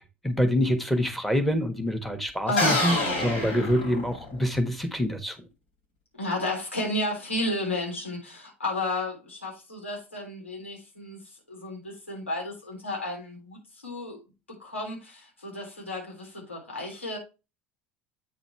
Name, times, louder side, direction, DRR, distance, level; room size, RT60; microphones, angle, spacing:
voice 1, 0.0-5.4, equal, ahead, 1.4 m, -26 dB
sound 1, 2.6-4.5, left 2 dB, 70° left, 3.4 m, -27 dB
voice 2, 6.2-13.6 13.8-14.2 14.6-17.2, left 1 dB, 90° left, 3.5 m, -32 dB
8.5 x 4.0 x 4.4 m
figure-of-eight pair, 65°, 6 cm